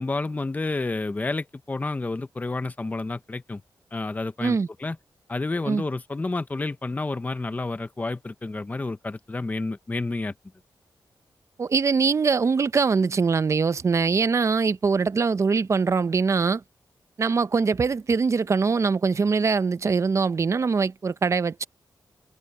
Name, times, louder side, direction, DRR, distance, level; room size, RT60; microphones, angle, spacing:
voice 1, 0.0-3.6 3.9-5.0 5.3-10.3, left 3 dB, 20° left, 0.8 m, -30 dB
voice 2, 11.6-16.6 17.2-21.7, right 5 dB, 40° right, 0.6 m, -22 dB
wide cardioid pair, 125°, 8 cm